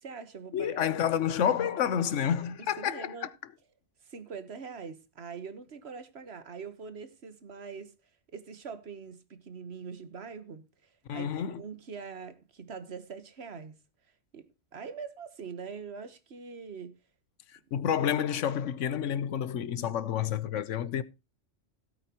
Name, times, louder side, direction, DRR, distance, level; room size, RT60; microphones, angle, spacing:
voice 1, 0.0-0.8 2.6-3.3 4.0-7.9 8.3-10.6 11.1-13.7 14.3-17.0 18.0-18.1, right 5 dB, 60° right, 1.5 m, -43 dB
voice 2, 0.5-3.3 11.1-11.6 17.7-21.0, left 9 dB, 85° left, 1.1 m, -29 dB
16.5 x 8.8 x 2.9 m
omnidirectional pair, 1.2 m